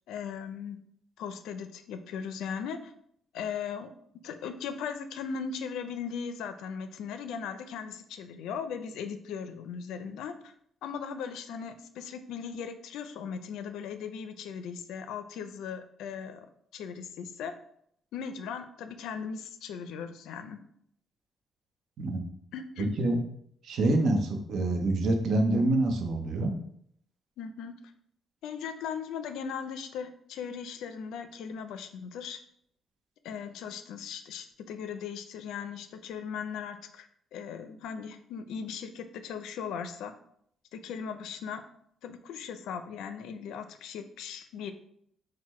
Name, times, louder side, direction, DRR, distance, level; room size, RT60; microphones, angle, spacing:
voice 1, 0.1-0.8 1.2-2.9 3.3-3.9 4.2-10.5 10.8-16.5 16.7-17.5 18.1-20.6 22.5-22.9 27.4-27.7 28.4-32.4 33.2-40.1 40.7-41.6 42.0-44.7, left 7 dB, 85° left, 9 dB, 0.4 m, -38 dB
voice 2, 22.8-23.2 23.6-26.5, right 2 dB, 70° right, 4 dB, 0.8 m, -26 dB
4.5 x 2.1 x 4.2 m, 0.67 s
cardioid pair, 90°, 0 cm